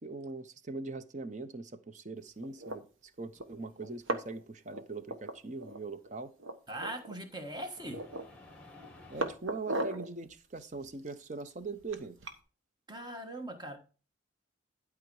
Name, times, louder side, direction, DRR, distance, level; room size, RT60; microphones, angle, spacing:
voice 1, 0.0-6.3 9.1-12.2, right 3 dB, 35° right, 0.7 m, -41 dB
sound 1, 2.4-2.8 3.4-3.5 3.8-4.4 4.7-5.8 6.0-6.1 6.4-7.2 7.6-8.4 8.8-10.1 10.6-12.4, right 1 dB, 90° right, 1.3 m, -38 dB
sound 2, 3.4-4.4 7.3-9.3, left 2 dB, 5° left, 1.9 m, -55 dB
voice 2, 6.7-8.0 12.9-13.8, right 1 dB, 20° right, 1.3 m, -40 dB
12.0 x 4.9 x 4.7 m
head